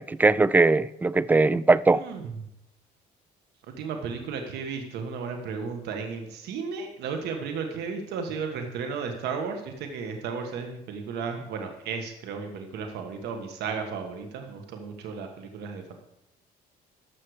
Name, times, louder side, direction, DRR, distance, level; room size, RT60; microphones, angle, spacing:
voice 1, 0.0-2.0, right 3 dB, 10° right, 19 dB, 0.3 m, -20 dB
voice 2, 1.9-2.3 3.7-16.0, right 5 dB, 80° right, 5 dB, 1.5 m, -34 dB
13.0 x 6.5 x 4.9 m, 0.83 s
cardioid pair, 110°, 17 cm